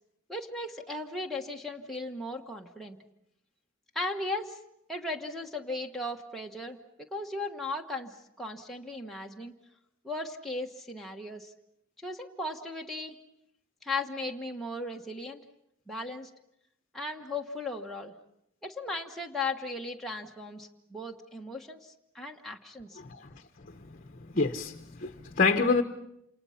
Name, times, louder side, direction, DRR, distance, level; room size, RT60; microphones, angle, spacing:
voice 1, 0.3-3.0 3.9-4.6 4.9-9.5 10.0-11.5 12.0-13.1 13.8-15.4 15.9-16.3 16.9-18.1 18.6-23.0, left 2 dB, ahead, -1 dB, 1.3 m, -37 dB
voice 2, 23.0-23.3 23.9-24.0 24.3-25.8, left 4 dB, 40° left, 6 dB, 1.0 m, -27 dB
28.0 x 28.0 x 5.8 m, 0.80 s
head